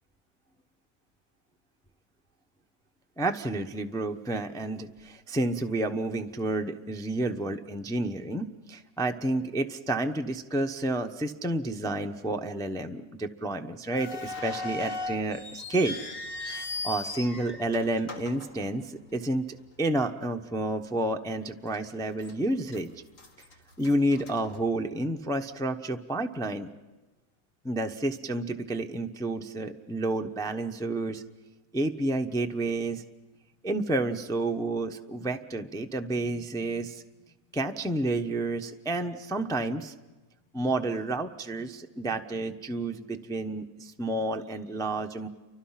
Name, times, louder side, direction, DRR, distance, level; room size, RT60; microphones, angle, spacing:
voice 1, 3.2-16.0 16.5-19.5 19.8-22.9 23.8-26.7 27.6-31.2 31.7-33.0 33.6-37.0 37.5-39.9 40.5-45.3, right 2 dB, 5° left, 5 dB, 0.7 m, -30 dB
sound 1, 13.9-19.2 19.5-19.6 20.4-20.6 21.0-21.1 21.7-22.3 22.7-25.1, left 3 dB, 55° left, 2.5 m, -38 dB
29.5 x 24.5 x 5.8 m, 1.1 s
omnidirectional pair, 1.6 m